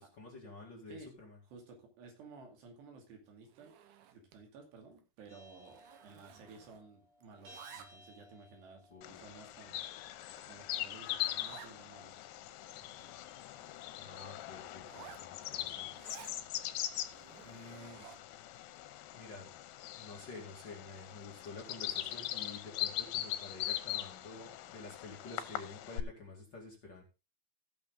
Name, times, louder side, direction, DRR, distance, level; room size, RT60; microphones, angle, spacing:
voice 1, 0.0-1.4 8.9-9.2 14.0-15.9 17.4-18.1 19.1-19.5 19.9-27.0, left 3 dB, 35° left, -2 dB, 2.2 m, -50 dB
voice 2, 1.4-3.8 4.1-9.8 10.4-12.2, right 4 dB, 90° right, 2 dB, 4.6 m, -55 dB
Zipper (clothing), 3.4-4.5 4.8-5.0 5.3-6.9 7.2-8.2 8.8-8.9 9.5-9.6 10.0-10.1 10.4-10.5 10.7-10.8 11.4-11.8 12.2-12.3 12.5-13.8 14.8-16.4 17.0-18.4, right 9 dB, 70° right, 2.0 m, -55 dB
sound 1, 5.3-17.4, left 1 dB, 55° right, 4.8 m, -64 dB
Bird vocalization bird call bird song, 9.0-26.0, left 13 dB, 90° left, 2.9 m, -41 dB
16.0 x 6.4 x 3.8 m, 0.29 s
omnidirectional pair, 4.7 m